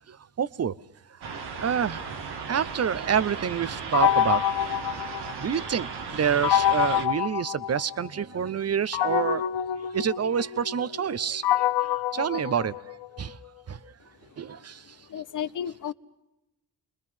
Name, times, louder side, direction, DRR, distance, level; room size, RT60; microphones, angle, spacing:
voice 1, 0.1-0.8 1.1-1.3 1.6-2.2 2.5-13.4 13.7-14.0 14.4-15.1, right 7 dB, 40° right, 0.8 m, -28 dB
sound 1, 1.2-7.1, right 5 dB, 85° right, 2.0 m, -36 dB
sound 2, 3.9-5.7 6.4-8.2 8.9-13.2, left 11 dB, 85° left, 0.7 m, -26 dB
voice 2, 14.2-15.9, left 9 dB, 50° left, 0.9 m, -35 dB
28.5 x 21.0 x 5.6 m
cardioid pair, 65°, 39 cm